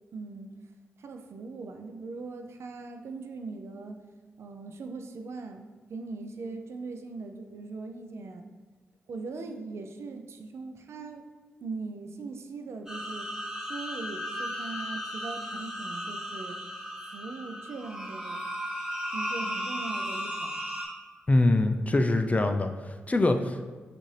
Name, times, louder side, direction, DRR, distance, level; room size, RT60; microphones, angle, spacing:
voice 1, 0.1-0.5 1.0-4.0 4.4-8.4 9.1-11.3 11.6-13.3 13.6-16.6 17.1-18.4 19.1-20.6, right 3 dB, 70° right, 6 dB, 0.4 m, -40 dB
sound 1, 12.9-20.9, equal, 15° right, 1.5 m, -35 dB
voice 2, 21.3-23.6, left 2 dB, 30° left, 7 dB, 0.4 m, -24 dB
6.2 x 2.6 x 3.2 m, 1.4 s
supercardioid pair, 45°, 5 cm